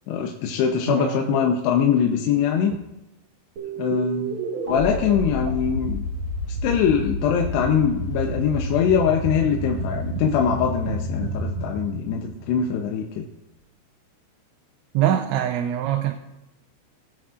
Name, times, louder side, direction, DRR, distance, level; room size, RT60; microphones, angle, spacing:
voice 1, 0.1-2.7 3.8-4.4 4.7-6.0 6.6-13.3, left 7 dB, 75° left, 2 dB, 2.8 m, -22 dB
voice 2, 0.9-1.4 2.6-2.8 14.9-16.1, right 11 dB, 90° right, 3 dB, 3.1 m, -24 dB
sound 1, 3.6-12.9, right 1 dB, 50° right, 1.7 m, -30 dB
21.5 x 9.3 x 2.5 m, 0.98 s
omnidirectional pair, 5.1 m